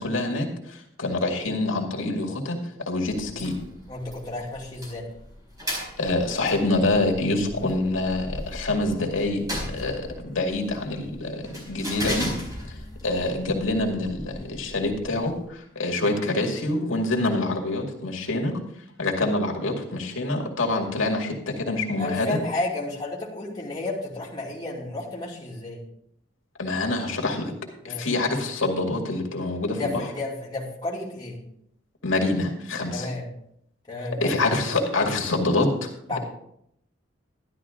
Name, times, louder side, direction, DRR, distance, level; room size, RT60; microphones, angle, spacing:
voice 1, 0.0-2.6 2.9-3.5 6.0-12.3 13.0-18.6 19.0-22.4 26.6-27.5 27.8-29.9 32.0-33.1 34.2-35.9, left 2 dB, 85° left, 1 dB, 2.2 m, -26 dB
sound 1, 3.0-15.5, left 1 dB, 20° right, 4.6 m, -37 dB
voice 2, 3.9-5.0 22.0-25.8 27.8-28.1 29.7-31.4 32.9-33.3 33.9-34.4 36.1-36.2, left 2 dB, 20° left, -5 dB, 2.6 m, -32 dB
12.5 x 11.5 x 3.7 m, 0.73 s
head